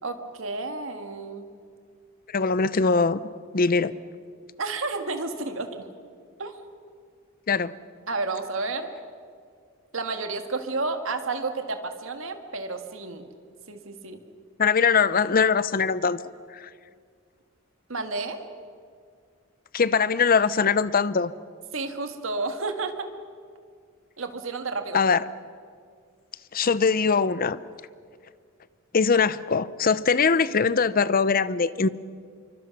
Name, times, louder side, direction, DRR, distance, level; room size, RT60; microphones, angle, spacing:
voice 1, 0.0-1.5 4.6-5.9 6.4-6.6 8.1-8.9 9.9-13.3 13.7-14.2 17.9-18.4 21.7-23.1 24.2-25.0, right 3 dB, 70° right, 7 dB, 1.8 m, -31 dB
voice 2, 2.3-3.2 3.5-3.9 7.5-7.7 14.6-16.2 16.5-16.7 19.7-21.3 24.9-25.2 26.5-27.6 28.9-31.9, left 5 dB, 45° left, 16 dB, 0.7 m, -22 dB
26.5 x 24.0 x 5.9 m, 2.1 s
head